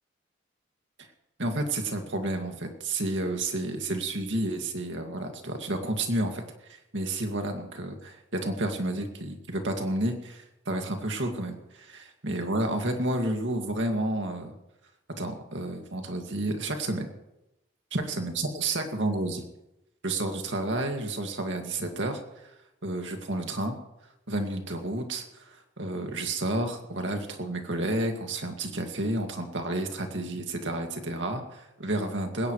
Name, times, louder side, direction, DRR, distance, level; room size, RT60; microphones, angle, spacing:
voice 1, 1.4-6.4 6.7-14.6 15.2-17.1 17.9-19.4 20.0-22.2 22.8-23.8 24.3-32.5, right 1 dB, 75° right, 4 dB, 2.2 m, -31 dB
20.0 x 17.0 x 3.2 m, 0.91 s
head